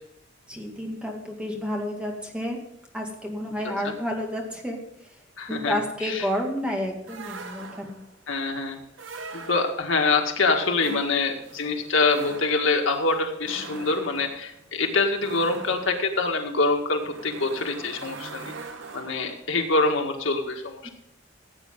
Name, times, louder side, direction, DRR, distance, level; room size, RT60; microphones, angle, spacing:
voice 1, 0.5-2.6 2.9-4.8 5.5-8.0 20.8-20.9, equal, 5° right, 0 dB, 2.1 m, -30 dB
voice 2, 5.4-6.3 8.3-8.8 9.3-18.5 18.9-20.9, left 3 dB, 90° left, 3 dB, 1.8 m, -25 dB
sound 1, 7.1-8.1 8.9-10.0 10.7-19.5, right 3 dB, 85° right, 1.2 m, -42 dB
16.0 x 8.7 x 3.8 m, 0.79 s
head